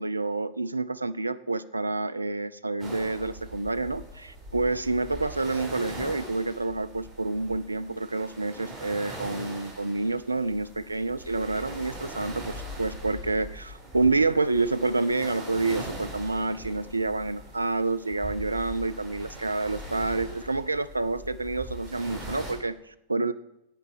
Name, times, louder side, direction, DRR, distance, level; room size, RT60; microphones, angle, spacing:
voice 1, 0.0-23.3, right 3 dB, 80° right, 13 dB, 0.4 m, -28 dB
sound 1, 2.8-22.5, right 1 dB, 20° right, 4.8 m, -41 dB
8.9 x 8.6 x 6.3 m, 0.85 s
figure-of-eight pair, 90°, 0 cm